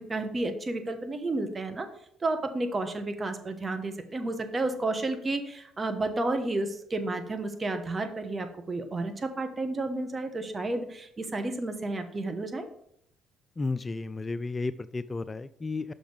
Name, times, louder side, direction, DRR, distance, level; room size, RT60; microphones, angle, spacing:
voice 1, 0.1-1.9 2.2-12.7, right 2 dB, 30° right, 6 dB, 1.2 m, -31 dB
voice 2, 13.6-15.9, left 3 dB, 30° left, 15 dB, 0.3 m, -33 dB
5.8 x 5.2 x 5.1 m, 0.71 s
hypercardioid pair, 50°, 0 cm